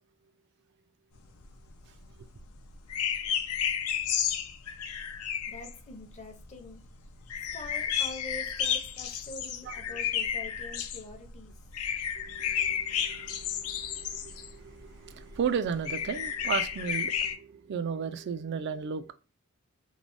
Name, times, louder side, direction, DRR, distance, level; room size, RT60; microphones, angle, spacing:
sound 1, 1.3-17.3, left 8 dB, 80° left, 0.5 m, -32 dB
voice 1, 5.5-6.8 7.5-11.7, left 2 dB, 30° left, 0.6 m, -45 dB
voice 2, 12.2-19.1, right 6 dB, 50° right, 0.3 m, -35 dB
3.2 x 2.1 x 2.5 m
head